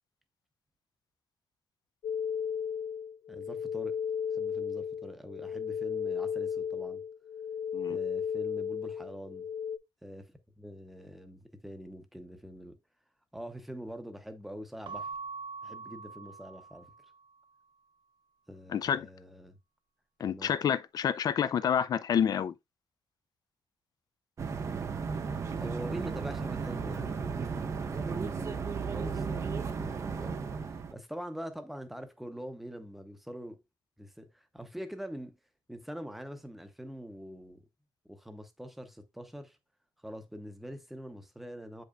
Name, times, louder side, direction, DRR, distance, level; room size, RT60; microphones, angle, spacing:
sound 1, 2.0-9.8, left 7 dB, 75° left, 1.0 m, -34 dB
voice 1, 3.3-4.0 4.3-7.0 7.9-9.5 10.0-12.8 13.3-15.1 15.6-16.9 18.5-19.6 20.2-20.7 25.4-33.6 34.0-35.4 35.7-37.6 38.1-39.6 40.0-41.8, equal, ahead, 0.8 m, -44 dB
Keyboard (musical) / Bell, 14.8-17.3, right 4 dB, 70° right, 0.8 m, -43 dB
voice 2, 18.7-19.1 20.2-22.5, left 8 dB, 50° left, 0.4 m, -28 dB
sound 2, 24.4-30.9, right 5 dB, 35° right, 0.6 m, -34 dB
7.7 x 5.2 x 2.4 m
wide cardioid pair, 160°, 9 cm